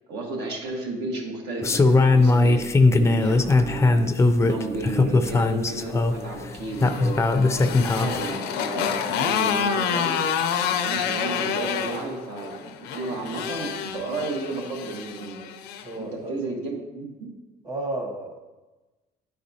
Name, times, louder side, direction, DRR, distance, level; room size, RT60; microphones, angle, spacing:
voice 1, 0.1-10.2 10.7-15.4 15.9-17.3, right 2 dB, 80° right, -1 dB, 1.5 m, -33 dB
sound 1, 1.6-8.3, left 3 dB, 15° left, 0.4 m, -20 dB
Motorcycle, 6.5-15.9, left 7 dB, 90° left, 0.5 m, -28 dB
voice 2, 15.8-16.3 17.6-18.4, right 2 dB, 25° right, 3 dB, 1.0 m, -32 dB
10.0 x 4.1 x 2.7 m, 1.2 s
cardioid pair, 110°, 17 cm